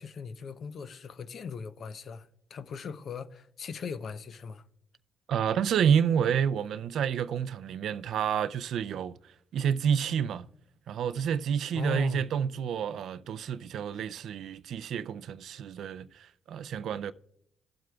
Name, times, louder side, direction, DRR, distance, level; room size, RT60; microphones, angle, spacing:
voice 1, 0.0-4.7 11.7-12.2, left 6 dB, 55° left, 0.6 m, -39 dB
voice 2, 5.3-9.1 9.5-10.5 10.9-17.1, right 8 dB, 70° right, 0.4 m, -29 dB
18.0 x 7.6 x 2.3 m
cardioid pair, 90°, 0 cm